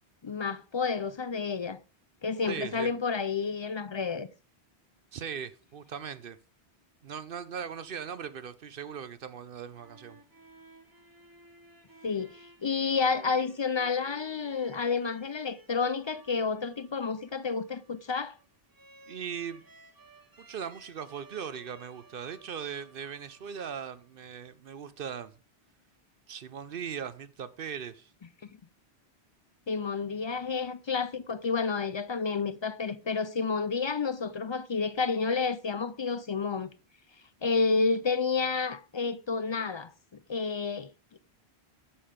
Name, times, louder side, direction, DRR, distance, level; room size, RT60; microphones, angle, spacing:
voice 1, 0.2-1.8 2.2-4.3 12.0-18.4 28.4-28.5 29.7-36.7 37.4-39.9 40.3-41.2, left 5 dB, 45° left, 0.3 m, -30 dB
voice 2, 2.5-2.9 5.1-6.4 7.0-10.2 19.1-19.6 20.4-25.3 26.3-28.1, right 7 dB, 60° right, 0.8 m, -39 dB
sound 1, 9.5-24.1, right 2 dB, 20° right, 1.1 m, -56 dB
8.5 x 7.6 x 5.0 m
omnidirectional pair, 1.1 m